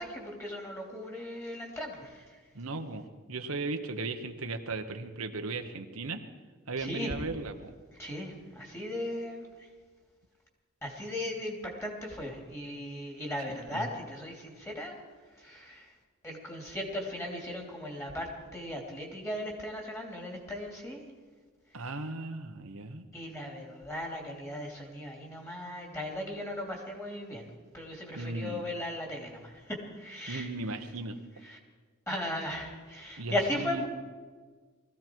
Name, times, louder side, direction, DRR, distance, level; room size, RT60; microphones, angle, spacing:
voice 1, 0.0-2.4 6.8-7.1 8.0-9.7 10.8-15.0 15.3-15.9 16.2-21.0 23.1-27.5 27.7-30.5 31.4-31.6 32.1-33.9, left 1 dB, 15° left, 0 dB, 2.9 m, -37 dB
voice 2, 2.5-6.2 6.7-7.7 13.7-13.9 21.7-23.1 28.1-28.6 30.3-31.2 33.2-33.9, right 3 dB, 90° right, 6 dB, 1.2 m, -36 dB
20.0 x 15.0 x 4.6 m, 1.5 s
head